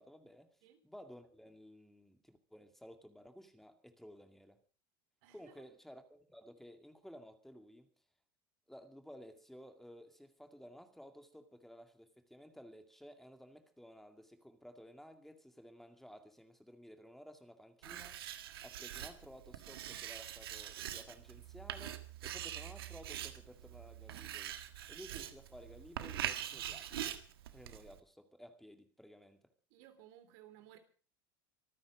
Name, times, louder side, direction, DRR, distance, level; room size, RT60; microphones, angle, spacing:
voice 1, 0.0-0.6 0.8-4.6 5.3-7.9 8.7-24.6 24.9-27.2 27.5-29.4, equal, ahead, 2.3 m, -55 dB
voice 2, 5.2-5.6 29.7-30.8, right 12 dB, 65° right, 3.3 m, -58 dB
Writing, 17.8-28.0, right 11 dB, 85° right, 1.7 m, -44 dB
25.5 x 9.6 x 5.0 m
hypercardioid pair, 90°, 12 cm